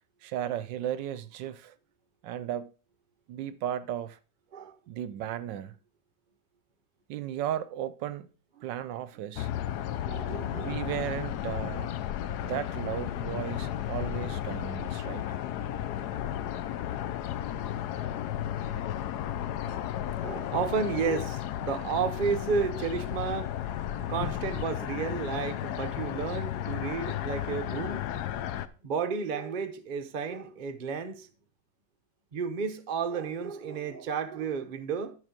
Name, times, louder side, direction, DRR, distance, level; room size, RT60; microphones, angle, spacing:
voice 1, 0.2-1.8 2.2-2.7 3.3-4.2 4.9-5.8 7.1-8.3 8.6-9.5 10.4-11.9 12.4-15.3, right 11 dB, 75° right, 1.2 m, -35 dB
sound 1, 9.4-28.7, left 11 dB, 70° left, 1.0 m, -34 dB
voice 2, 9.8-10.7 19.9-28.1 28.8-31.3 32.3-35.1, right 5 dB, 50° right, 0.6 m, -32 dB
11.5 x 4.9 x 5.1 m
omnidirectional pair, 2.1 m